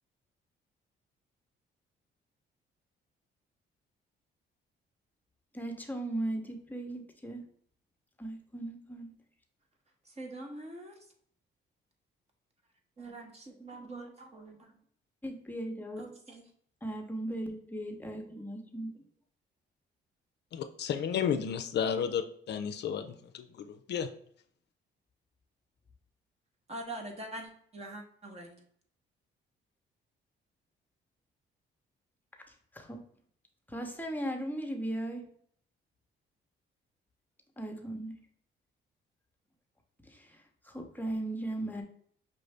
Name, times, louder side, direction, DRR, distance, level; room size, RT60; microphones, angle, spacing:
voice 1, 5.5-7.4 8.2-9.1 15.2-16.0 16.8-18.9 32.5-33.0 33.7-35.2 37.6-38.2 40.0-41.8, right 1 dB, 10° left, 3 dB, 0.8 m, -37 dB
voice 2, 10.1-11.0 13.0-14.8 16.0-16.4 26.7-28.6, right 1 dB, 30° right, 2 dB, 1.1 m, -44 dB
voice 3, 20.5-24.1, left 8 dB, 60° left, 9 dB, 0.4 m, -33 dB
5.6 x 2.6 x 3.3 m, 0.63 s
cardioid pair, 90°, 20 cm